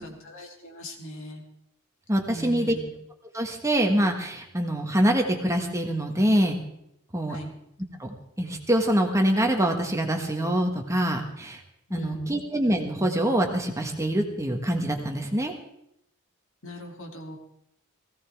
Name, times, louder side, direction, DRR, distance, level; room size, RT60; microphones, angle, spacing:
voice 1, 0.0-1.4 2.3-2.9 7.3-7.5 11.9-12.4 16.6-17.4, equal, 65° left, 1 dB, 2.7 m, -40 dB
voice 2, 2.1-2.8 3.3-6.6 7.1-7.4 8.0-11.6 11.9-15.5, right 1 dB, 15° right, 3 dB, 1.5 m, -25 dB
18.0 x 16.5 x 3.6 m, 0.77 s
head